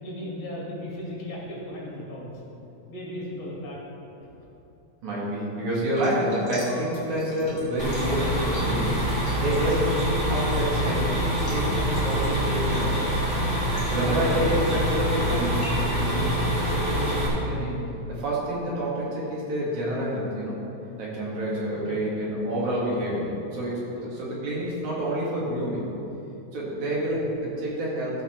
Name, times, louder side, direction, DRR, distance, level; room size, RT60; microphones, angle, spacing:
voice 1, 0.0-2.3 2.9-3.8 21.7-22.0 22.5-22.6 23.9-24.0 26.7-26.9, left 1 dB, 60° left, -5 dB, 3.4 m, -37 dB
voice 2, 5.0-13.1 13.9-16.4 16.7-17.8 18.1-20.6 21.0-25.8 26.5-28.2, right 1 dB, 75° right, -6 dB, 3.3 m, -28 dB
sound 1, 5.9-13.0 13.5-15.9, left 2 dB, 40° left, 2.4 m, -44 dB
sound 2, 7.8-17.3, equal, 25° right, 2.7 m, -25 dB
15.0 x 5.7 x 4.5 m, 3.0 s
omnidirectional pair, 3.4 m